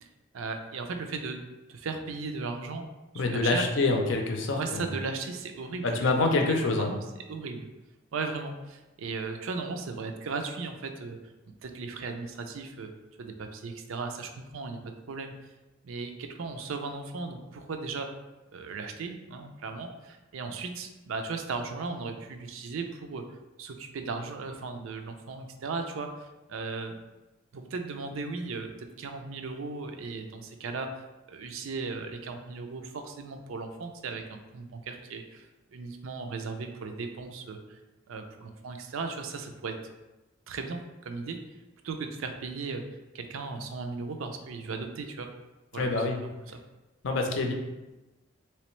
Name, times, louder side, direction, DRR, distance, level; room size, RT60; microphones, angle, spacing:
voice 1, 0.3-1.4 1.7-2.9 3.1-3.7 4.6-7.0 7.3-7.7 8.1-11.2 11.6-12.9 13.2-14.8 15.1-15.3 15.8-18.1 18.5-23.2 23.6-27.0 27.5-30.9 31.3-37.8 38.1-39.7 40.5-41.4 41.8-42.8 43.1-45.3 45.7-46.6, right 4 dB, 75° right, 6 dB, 0.4 m, -36 dB
voice 2, 3.1-4.9 5.8-6.9 45.8-46.2 47.0-47.5, left 3 dB, 65° left, 3 dB, 0.5 m, -26 dB
3.3 x 3.1 x 3.0 m, 1.1 s
head